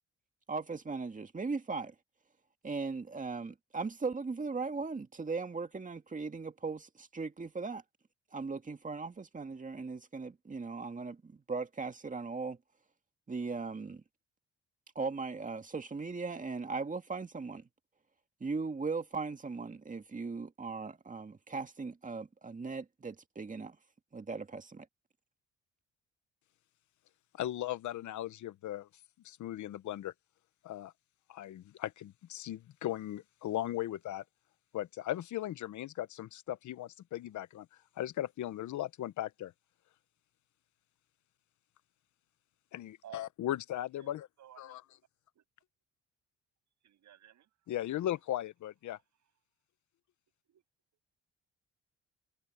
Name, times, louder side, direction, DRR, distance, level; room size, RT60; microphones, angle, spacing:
voice 1, 0.5-1.9 2.6-7.8 8.3-12.6 13.3-14.0 15.0-17.7 18.4-23.8 24.1-24.9, right 4 dB, 25° right, 2.1 m, -38 dB
voice 2, 27.4-28.9 29.2-30.1 30.6-30.9 31.3-34.2 34.7-37.7 38.0-39.5 42.7-44.3 44.6-44.8 47.7-49.0, left 13 dB, 75° left, 1.1 m, -37 dB
voice 3, 44.4-44.8 45.3-45.4 46.8-47.5 50.5-50.6, right 11 dB, 70° right, 7.9 m, -54 dB
cardioid pair, 90°, 30 cm